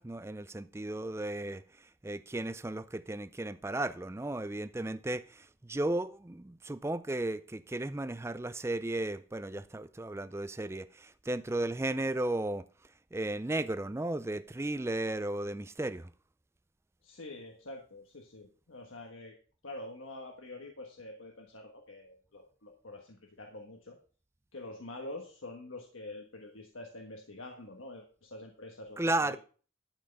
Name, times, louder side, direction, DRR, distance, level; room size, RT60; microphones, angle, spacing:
voice 1, 0.0-12.6 13.1-16.1 29.0-29.4, right 2 dB, 15° right, 0.4 m, -35 dB
voice 2, 17.0-19.3 19.6-24.0 24.5-29.0 29.3-29.4, left 2 dB, 80° left, 1.4 m, -46 dB
12.0 x 5.6 x 5.4 m
head